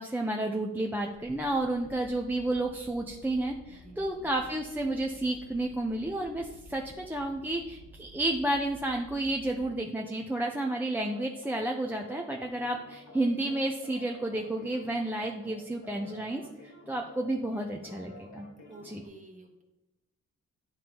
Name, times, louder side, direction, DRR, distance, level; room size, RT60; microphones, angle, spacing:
voice 1, 0.0-18.5 18.8-19.0, right 1 dB, 5° right, 0 dB, 0.6 m, -31 dB
sound 1, 1.1-9.6, right 1 dB, 15° left, 1.2 m, -53 dB
voice 2, 3.7-4.5 18.7-19.6, right 1 dB, 25° right, 1 dB, 1.4 m, -52 dB
sound 2, 11.1-19.1, left 1 dB, 70° left, 1.4 m, -51 dB
10.5 x 3.8 x 2.9 m, 0.96 s
cardioid pair, 90°, 29 cm